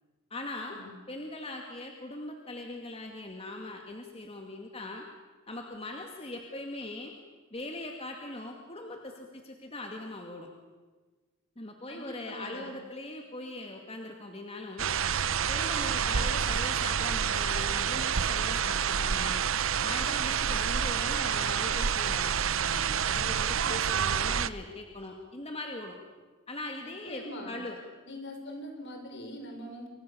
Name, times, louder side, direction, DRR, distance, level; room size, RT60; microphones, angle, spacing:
voice 1, 0.3-5.1 5.5-7.2 7.5-10.5 11.6-14.9 15.5-19.4 19.8-26.0 26.5-27.8, left 2 dB, 30° left, 2 dB, 2.2 m, -41 dB
voice 2, 11.9-12.8 27.1-27.5 28.1-29.9, left 1 dB, 60° left, 5 dB, 5.2 m, -42 dB
sound 1, 14.8-24.5, right 7 dB, 80° right, 0.8 m, -28 dB
29.0 x 25.0 x 7.0 m, 1.3 s
head